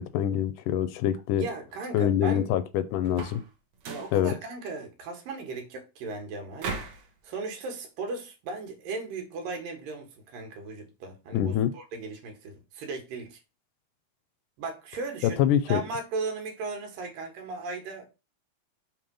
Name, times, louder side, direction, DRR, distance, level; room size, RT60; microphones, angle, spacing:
voice 1, 0.0-1.5 1.9-3.4 4.1-4.3 11.3-11.7 15.4-15.8, left 10 dB, 80° left, 2.0 m, -25 dB
voice 2, 1.3-2.5 3.9-6.9 7.2-13.4 14.6-15.4 15.7-18.1, right 3 dB, 90° right, 3.3 m, -37 dB
sound 1, 3.0-3.5 3.8-4.2 6.6-7.1, right 4 dB, 60° right, 2.2 m, -36 dB
6.9 x 3.1 x 5.4 m
omnidirectional pair, 3.8 m